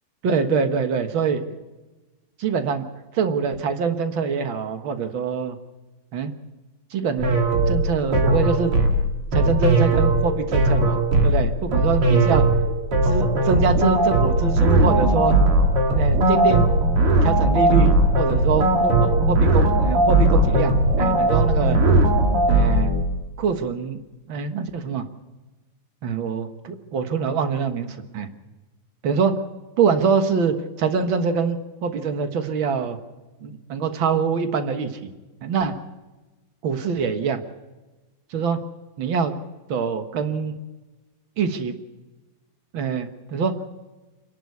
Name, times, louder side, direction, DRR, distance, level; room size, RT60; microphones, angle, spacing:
voice 1, 0.2-1.5 2.4-2.8 3.1-5.5 6.1-6.3 6.9-7.4 7.7-8.7 9.3-12.4 13.0-15.3 15.9-16.7 17.2-21.8 22.5-22.9 23.4-24.0 24.3-25.0 26.0-28.3 29.0-29.3 29.8-33.0 33.4-35.1 35.4-35.7 36.6-37.4 38.3-38.6 39.0-39.3 39.7-40.6 41.4-41.7 42.7-43.5, right 5 dB, 65° right, 7 dB, 1.2 m, -24 dB
sound 1, 7.2-23.0, right 1 dB, 40° right, 2.8 m, -18 dB
27.0 x 11.5 x 8.3 m, 1.1 s
omnidirectional pair, 4.2 m